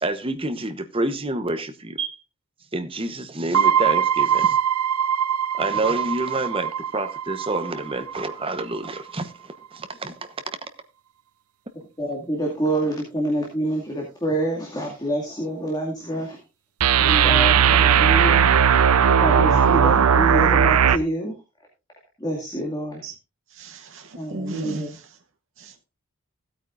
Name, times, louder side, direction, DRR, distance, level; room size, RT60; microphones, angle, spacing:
voice 1, 0.0-2.2 2.7-4.6 5.6-9.3 9.7-10.1, right 2 dB, 25° right, 1.0 m, -28 dB
sound 1, 3.5-8.4 8.8-8.9 16.8-21.0, right 8 dB, 90° right, 0.6 m, -19 dB
voice 2, 12.0-16.4 17.0-18.5 19.2-21.3 22.2-23.0 24.2-25.0, right 1 dB, 20° left, 2.3 m, -27 dB
voice 3, 23.5-25.0 25.6-25.8, right 2 dB, 60° right, 0.9 m, -35 dB
16.0 x 8.9 x 2.5 m
head